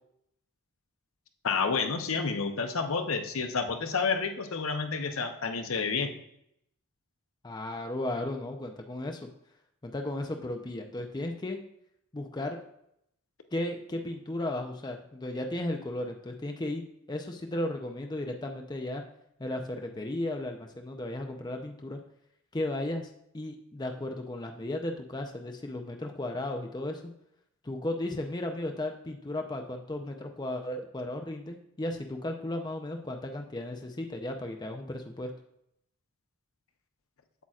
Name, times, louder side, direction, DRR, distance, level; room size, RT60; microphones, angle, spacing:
voice 1, 1.4-6.1, left 5 dB, 65° left, 6 dB, 0.7 m, -29 dB
voice 2, 7.4-9.3 9.8-11.6 12.1-12.6 13.5-19.0 19.4-22.0 22.5-27.0 27.6-35.3, left 1 dB, 20° left, 3 dB, 0.5 m, -35 dB
8.2 x 7.6 x 2.4 m, 0.76 s
head